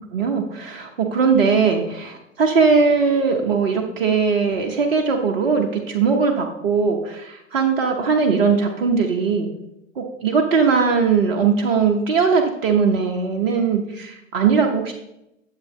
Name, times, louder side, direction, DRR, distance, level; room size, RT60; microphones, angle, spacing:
voice 1, 0.1-9.5 10.0-14.9, right 5 dB, 50° right, 2 dB, 1.1 m, -19 dB
10.5 x 7.4 x 3.2 m, 0.85 s
figure-of-eight pair, 110°, 39 cm